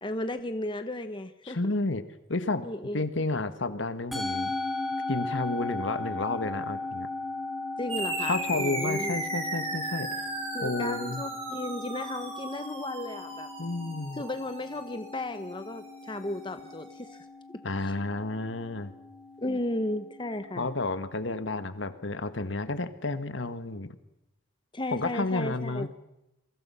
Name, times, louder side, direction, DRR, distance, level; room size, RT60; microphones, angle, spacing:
voice 1, 0.0-1.7 2.6-3.1 7.8-9.2 10.5-13.5 14.1-17.2 17.8-17.9 19.4-20.7 24.7-25.9, left 1 dB, 25° left, 9 dB, 1.1 m, -34 dB
voice 2, 1.5-2.0 2.3-2.6 2.9-4.5 5.1-7.1 8.3-10.1 10.6-11.2 13.6-14.2 17.6-18.9 20.6-23.9 24.9-25.9, left 2 dB, 65° left, 11 dB, 1.6 m, -31 dB
Musical instrument, 4.1-22.6, left 2 dB, ahead, 5.1 m, -38 dB
sound 1, 7.9-16.8, right 2 dB, 30° right, 7.5 m, -37 dB
27.5 x 23.0 x 5.7 m, 0.89 s
head